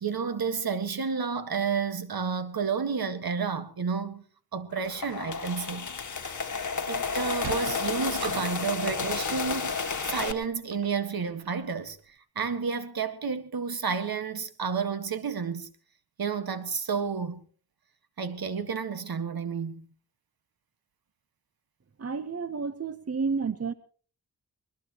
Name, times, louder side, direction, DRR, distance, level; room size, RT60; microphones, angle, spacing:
voice 1, 0.0-4.2 4.5-5.9 6.9-12.0 12.4-15.7 16.2-17.4 18.2-19.9, right 6 dB, 65° right, 1.7 m, -31 dB
sound 1, 4.7-10.3, left 5 dB, 50° left, 1.7 m, -31 dB
Sliding door, 7.1-11.7, right 8 dB, 80° right, 1.1 m, -43 dB
voice 2, 22.0-23.7, right 5 dB, 40° right, 1.0 m, -30 dB
21.5 x 21.0 x 3.0 m
cardioid pair, 60°, 39 cm